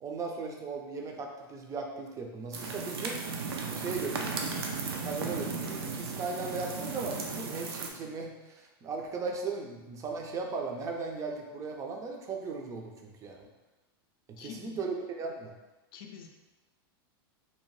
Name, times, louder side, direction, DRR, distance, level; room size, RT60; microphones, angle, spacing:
voice 1, 0.0-3.2 3.5-4.3 5.0-13.5 14.3-15.5, right 4 dB, 25° right, 2 dB, 0.4 m, -37 dB
sound 1, 2.5-7.9, right 4 dB, 85° right, 0.5 m, -35 dB
voice 2, 14.4-15.0 15.9-16.3, left 7 dB, 65° left, 3 dB, 0.4 m, -46 dB
2.7 x 2.0 x 3.0 m, 1.1 s
hypercardioid pair, 120°, 13 cm